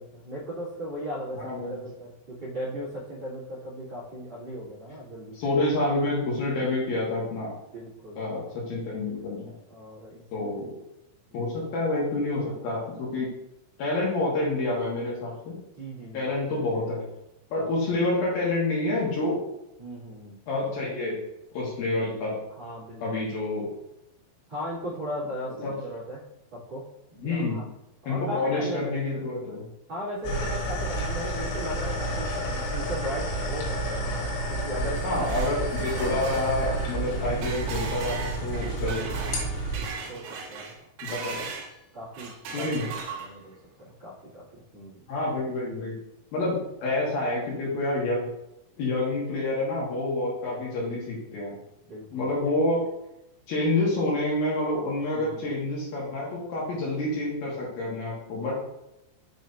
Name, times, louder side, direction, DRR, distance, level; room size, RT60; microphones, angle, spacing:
voice 1, 0.0-5.4 7.7-8.2 9.7-10.5 11.3-11.5 15.8-16.2 17.6-17.7 19.8-20.4 22.5-23.3 24.5-26.2 26.5-27.6 28.0-29.0 29.9-35.2 37.1-37.4 40.1-40.7 41.9-42.7 43.2-45.1 51.9-52.3 55.1-55.4 58.4-58.5, equal, 40° right, -10 dB, 1.7 m, -37 dB
voice 2, 1.3-1.7 5.3-7.5 8.2-9.5 10.3-10.7 11.3-13.3 13.8-15.6 16.1-17.1 17.5-19.4 20.5-21.2 21.5-22.4 23.0-23.7 25.6-25.7 27.2-27.6 28.0-29.6 35.0-39.1 41.0-41.5 42.5-42.9 45.1-45.9 46.3-48.2 48.8-51.5 52.1-52.8 53.5-58.5, left 2 dB, 65° left, -5 dB, 2.5 m, -28 dB
sound 1, 30.2-39.9, right 1 dB, 85° left, 3.8 m, -30 dB
sound 2, 34.8-41.7 42.1-43.6, right 5 dB, 80° right, 3.4 m, -38 dB
6.9 x 5.9 x 2.6 m, 0.87 s
omnidirectional pair, 5.9 m